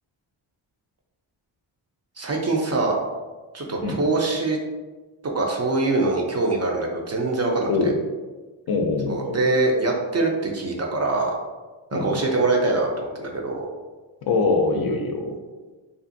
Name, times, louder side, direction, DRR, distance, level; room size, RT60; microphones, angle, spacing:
voice 1, 2.2-3.0 3.5-4.6 5.2-7.9 9.1-11.3 11.9-13.7, right 2 dB, 35° right, 0 dB, 0.5 m, -23 dB
voice 2, 8.7-9.4 11.9-12.2 14.2-15.3, left 3 dB, 50° left, 3 dB, 0.5 m, -23 dB
2.6 x 2.4 x 2.6 m, 1.3 s
cardioid pair, 50°, 47 cm